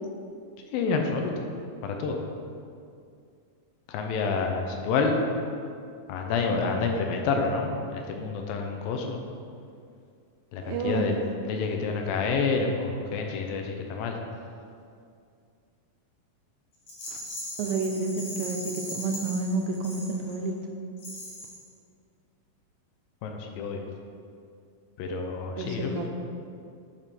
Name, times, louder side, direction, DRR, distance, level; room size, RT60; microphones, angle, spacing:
voice 1, 0.7-1.5 1.8-2.2 3.9-5.2 6.1-9.2 10.5-11.2 11.5-14.2 23.2-23.8 25.0-25.9, left 4 dB, 80° left, 3 dB, 2.3 m, -28 dB
voice 2, 10.6-11.2 17.6-20.5 25.6-26.1, right 3 dB, 80° right, 3 dB, 2.3 m, -30 dB
Rattle, 16.9-20.5 21.0-21.7, left 1 dB, 65° left, 1.4 m, -39 dB
8.9 x 3.6 x 4.2 m, 2.3 s
omnidirectional pair, 4.2 m